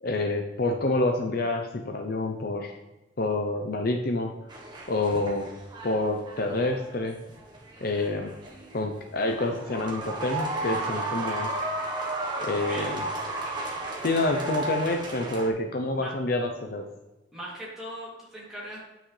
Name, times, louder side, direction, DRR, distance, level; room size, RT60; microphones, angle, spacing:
voice 1, 0.0-2.8 3.2-4.3 4.9-5.5 5.8-7.2 7.8-8.3 8.7-11.5 12.4-13.0 14.0-16.9, left 2 dB, 50° left, 4 dB, 0.7 m, -27 dB
sound 1, 4.5-15.5, right 2 dB, 25° right, 1.1 m, -34 dB
voice 2, 12.6-13.0 15.9-16.1 17.3-18.8, equal, ahead, -7 dB, 2.7 m, -39 dB
9.6 x 6.1 x 3.3 m, 1.1 s
head